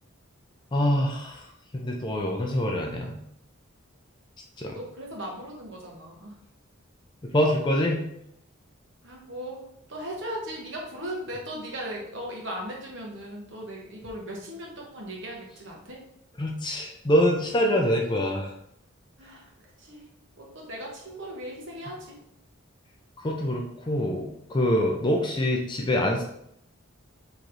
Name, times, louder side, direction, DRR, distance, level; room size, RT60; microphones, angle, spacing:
voice 1, 0.7-1.4 1.7-3.2 4.6-4.8 7.2-8.0 16.4-18.5 23.2-26.2, equal, 20° left, 0 dB, 0.4 m, -25 dB
voice 2, 4.7-6.4 9.0-16.0 19.2-19.5 19.8-20.1 20.4-22.2, equal, 55° right, -1 dB, 0.9 m, -38 dB
4.2 x 3.0 x 2.6 m, 0.75 s
head